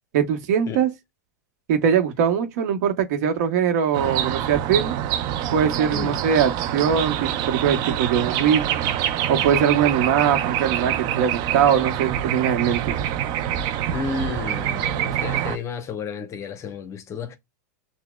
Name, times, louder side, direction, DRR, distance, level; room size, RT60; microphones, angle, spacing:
voice 1, 0.1-0.9 1.7-5.0 5.5-8.6 9.3-13.0, right 8 dB, 65° right, 0.9 m, -21 dB
sound 1, 3.9-15.6, right 11 dB, 45° right, 0.4 m, -25 dB
voice 2, 13.9-17.4, left 5 dB, 30° left, 0.7 m, -32 dB
5.8 x 2.1 x 2.2 m
hypercardioid pair, 105°, 10 cm